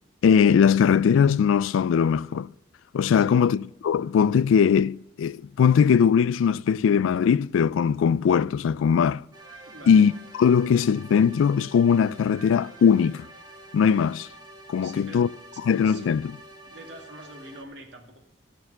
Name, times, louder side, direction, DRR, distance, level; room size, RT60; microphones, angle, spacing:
voice 1, 0.2-2.5 2.9-9.2 9.9-10.1 10.4-13.3 13.7-14.3 14.7-15.3 15.7-16.3, left 7 dB, 90° left, 0.3 m, -20 dB
voice 2, 3.2-3.5 9.6-10.0 14.8-16.1 16.7-18.2, right 1 dB, 65° right, 2.2 m, -46 dB
sound 1, 9.3-17.6, right 2 dB, 20° right, 1.2 m, -47 dB
13.5 x 6.8 x 5.6 m
head